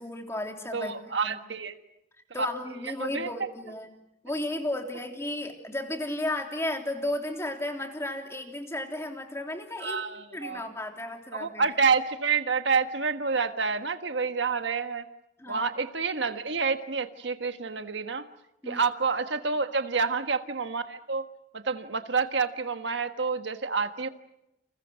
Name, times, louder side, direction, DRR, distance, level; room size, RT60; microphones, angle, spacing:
voice 1, 0.0-1.4 2.3-3.9 4.2-10.0 10.3-11.7 15.4-15.7 18.6-18.8, left 1 dB, 15° left, 4 dB, 3.3 m, -34 dB
voice 2, 0.7-1.7 2.8-3.3 9.8-10.6 11.3-15.0 15.5-18.3 18.7-21.3 21.5-24.1, right 5 dB, 70° right, 9 dB, 1.5 m, -28 dB
30.0 x 28.0 x 6.3 m, 0.87 s
head